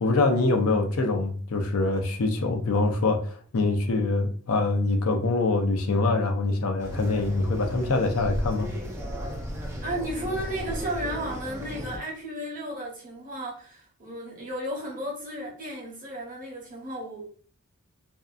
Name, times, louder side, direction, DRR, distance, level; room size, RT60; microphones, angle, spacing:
voice 1, 0.0-8.7, left 3 dB, 75° left, 0.5 m, -24 dB
sound 1, 6.8-12.0, equal, 15° right, 0.4 m, -35 dB
voice 2, 9.8-17.3, right 1 dB, 40° right, 0.9 m, -34 dB
2.6 x 2.3 x 2.4 m
head